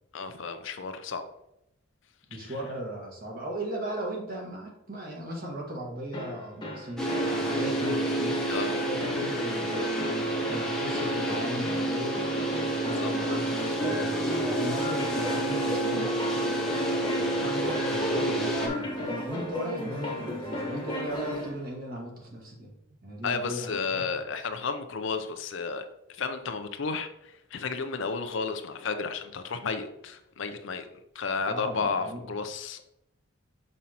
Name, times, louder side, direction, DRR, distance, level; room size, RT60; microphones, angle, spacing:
voice 1, 0.1-1.3 2.4-2.5 8.5-8.7 12.9-13.1 23.2-25.8 26.2-30.9 31.1-32.8, left 4 dB, 60° left, 8 dB, 0.5 m, -32 dB
voice 2, 2.3-8.4 8.7-12.2 12.7-16.1 17.2-22.7 23.0-24.2 31.4-32.3, right 1 dB, 45° right, -1 dB, 1.5 m, -37 dB
sound 1, 6.1-21.6, left 1 dB, 20° left, 1.1 m, -35 dB
sound 2, 7.0-18.7, right 1 dB, 5° left, 0.8 m, -29 dB
6.2 x 5.4 x 2.9 m, 0.82 s
head